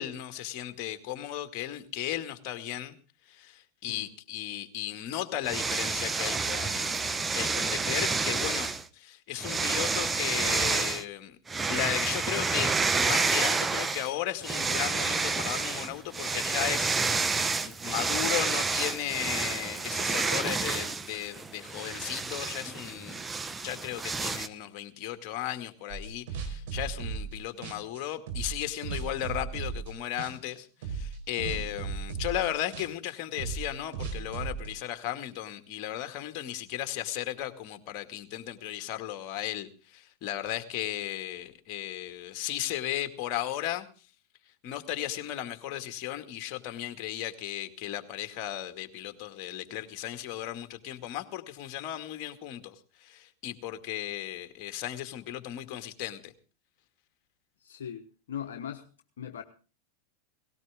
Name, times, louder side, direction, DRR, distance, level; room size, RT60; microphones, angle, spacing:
voice 1, 0.0-3.0 3.3-11.4 11.7-17.3 17.6-23.3 23.6-43.9 44.6-56.3, left 12 dB, 50° left, 2.1 m, -35 dB
sound 1, 5.4-8.8 9.4-11.0 11.5-14.1 14.4-24.5, right 4 dB, 15° right, 1.1 m, -29 dB
sound 2, 25.9-27.4 27.6-29.9 30.2-30.6 30.8-34.7, right 5 dB, 65° right, 4.5 m, -36 dB
voice 2, 57.6-58.8 59.2-59.4, left 9 dB, 75° left, 1.2 m, -40 dB
18.5 x 17.5 x 3.6 m
hypercardioid pair, 90°, 0 cm